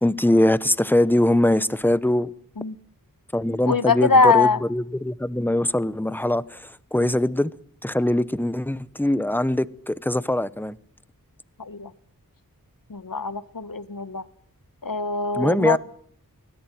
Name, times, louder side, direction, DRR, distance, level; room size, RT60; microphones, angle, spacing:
voice 1, 0.0-2.3 3.3-7.5 7.8-10.8 15.3-15.8, left 1 dB, 5° left, 0.9 m, -22 dB
voice 2, 3.7-4.6 7.0-7.2 11.6-11.9 12.9-14.2 14.8-15.8, left 4 dB, 65° left, 1.3 m, -22 dB
24.5 x 17.0 x 9.3 m
wide cardioid pair, 50°, 36 cm